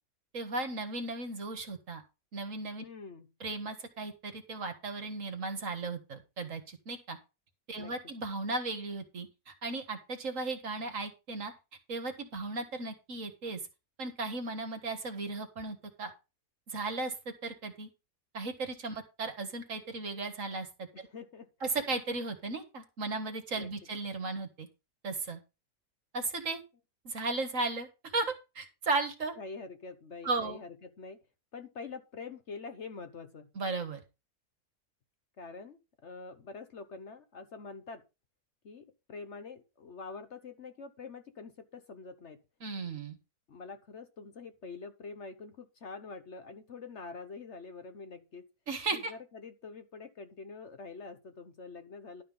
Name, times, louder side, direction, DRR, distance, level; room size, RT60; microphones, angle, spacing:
voice 1, 0.3-2.0 2.3-2.8 3.4-7.2 7.7-11.5 11.9-13.6 14.0-16.1 16.7-17.9 18.3-20.9 21.6-24.7 25.0-25.4 26.1-26.6 27.0-27.9 28.1-29.4 30.2-30.6 33.6-34.0 42.6-43.2 48.7-49.1, right 3 dB, 55° right, 7 dB, 2.0 m, -36 dB
voice 2, 2.8-3.3 7.8-8.1 20.9-21.5 23.5-23.7 29.4-31.2 31.5-33.5 35.4-38.0 38.6-42.4 43.5-48.5 48.9-52.2, left 4 dB, 50° left, 9 dB, 1.2 m, -45 dB
11.5 x 5.6 x 5.5 m, 0.28 s
omnidirectional pair, 1.6 m